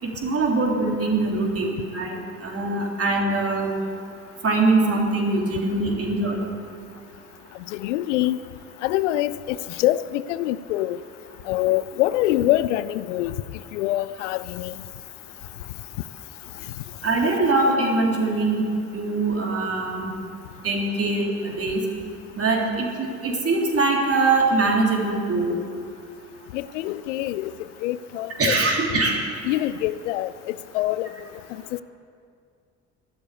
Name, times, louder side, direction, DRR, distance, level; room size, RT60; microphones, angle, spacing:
voice 1, 0.0-3.8 4.4-6.4 17.0-20.1 20.6-21.9 22.4-22.9 23.2-25.6 28.4-29.2, right 3 dB, 40° right, 0 dB, 3.4 m, -22 dB
voice 2, 7.7-8.4 8.8-11.0 11.5-13.3 13.7-14.7 26.5-27.5 27.8-28.6 29.4-31.1 31.7-31.8, left 15 dB, 70° left, 16 dB, 0.5 m, -25 dB
12.5 x 12.5 x 8.4 m, 2.3 s
figure-of-eight pair, 50°, 37 cm